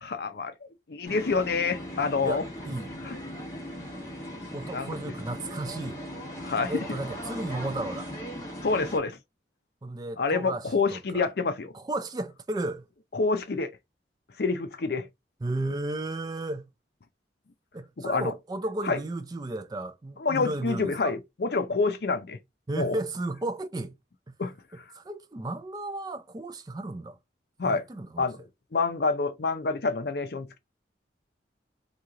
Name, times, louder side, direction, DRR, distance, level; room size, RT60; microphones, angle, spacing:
voice 1, 0.0-2.4 3.0-3.2 4.7-5.1 6.4-6.9 8.6-9.2 10.2-11.7 13.1-13.7 14.4-15.1 18.0-18.3 18.9-19.0 20.2-22.4 22.7-23.0 24.4-24.5 27.6-27.8 28.2-28.4 28.7-30.6, left 4 dB, 60° left, 0.5 m, -27 dB
sound 1, 1.0-9.0, equal, 20° left, 1.4 m, -38 dB
voice 2, 2.2-2.9 4.5-6.0 6.7-8.1 9.8-11.3 11.7-12.9 15.4-16.7 17.7-21.1 22.7-24.0 24.3-24.4 24.9-27.2 27.6-28.3, right 2 dB, 20° right, 0.3 m, -34 dB
3.0 x 2.8 x 3.6 m
head